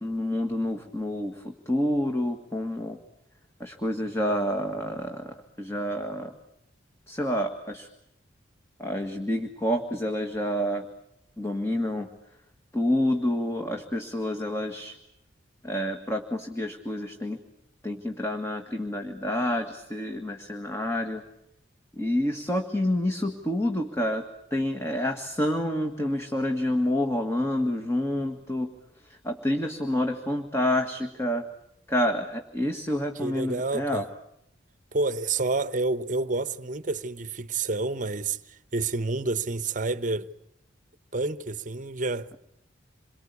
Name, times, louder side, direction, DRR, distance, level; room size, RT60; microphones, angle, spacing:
voice 1, 0.0-3.0 3.6-6.3 7.1-7.9 8.8-10.9 11.4-12.1 12.7-15.0 15.6-17.4 17.8-21.2 22.0-24.2 24.5-28.7 29.0-31.5 31.9-34.0, left 1 dB, 15° left, 1.7 m, -28 dB
voice 2, 33.1-34.1 34.9-40.3 41.1-42.3, right 3 dB, 45° right, 1.0 m, -29 dB
27.5 x 23.5 x 8.3 m
head